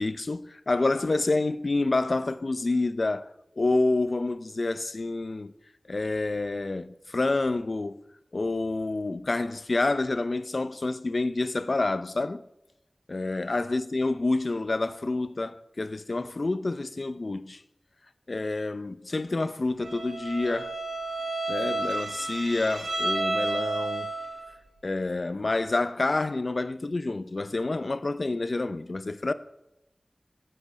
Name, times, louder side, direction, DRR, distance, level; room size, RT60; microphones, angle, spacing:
voice 1, 0.0-3.3 3.6-5.5 5.9-8.0 8.3-12.4 13.1-17.6 18.3-20.7 21.5-24.1 24.8-29.3, left 2 dB, 60° left, 0.7 m, -28 dB
Bowed string instrument, 19.8-24.5, right 2 dB, 85° right, 5.0 m, -31 dB
21.5 x 7.9 x 6.3 m
wide cardioid pair, 60°, 0 cm